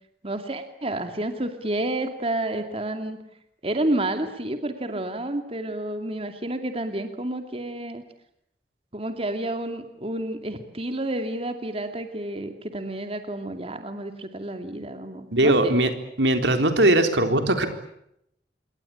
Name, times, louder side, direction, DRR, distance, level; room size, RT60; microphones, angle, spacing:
voice 1, 0.2-3.2 3.6-8.0 8.9-15.7, right 1 dB, 35° right, 7 dB, 2.6 m, -30 dB
voice 2, 15.3-15.9 16.2-17.7, right 1 dB, 85° right, 7 dB, 4.0 m, -20 dB
28.0 x 23.5 x 8.7 m, 0.78 s
head